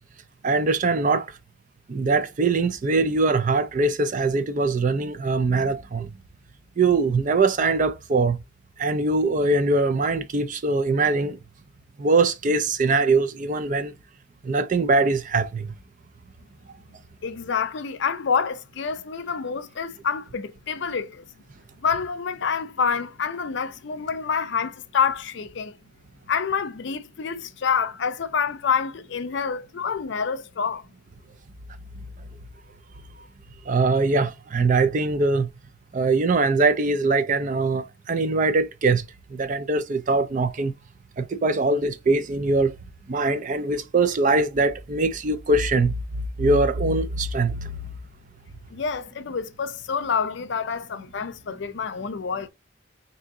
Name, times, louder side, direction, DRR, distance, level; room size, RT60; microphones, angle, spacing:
voice 1, 0.4-1.3 1.9-6.1 6.8-8.4 8.8-11.4 12.0-13.9 14.4-15.7 33.7-35.5 35.9-39.0 39.3-40.7 41.2-42.7 43.1-46.0 46.4-47.9, right 3 dB, 40° right, 0.4 m, -22 dB
voice 2, 17.2-21.2 21.8-25.8 26.3-30.8 48.7-52.5, left 6 dB, 60° left, 0.5 m, -27 dB
3.8 x 2.7 x 3.6 m
head